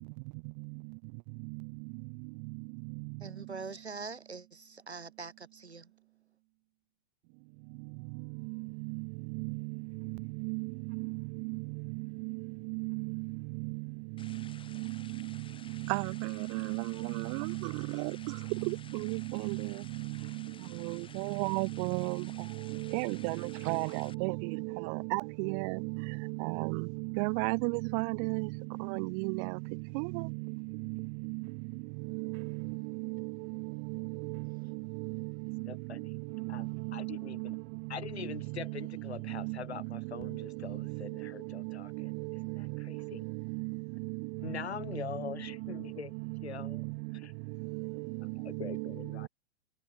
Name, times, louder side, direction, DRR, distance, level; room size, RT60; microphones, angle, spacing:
voice 1, 3.2-5.9, right 4 dB, 90° right, 2.2 m, -43 dB
sound 1, 14.2-24.1, left 7 dB, 15° left, 1.9 m, -55 dB
voice 2, 15.9-16.8 17.3-17.5 17.9-18.0 19.0-19.2 19.4-19.6 21.2-22.2 22.9-23.4 23.7-24.3 25.1-25.8 26.4-26.8 27.2-28.5 28.9-29.4 30.0-30.1, right 40 dB or more, 30° right, 0.4 m, -32 dB
voice 3, 35.7-36.2 36.5-37.6 37.9-42.1 42.5-43.3 44.4-46.1 46.4-46.8 47.1-47.3 48.2-49.3, left 8 dB, 75° left, 1.1 m, -43 dB
figure-of-eight pair, 105°, 32 cm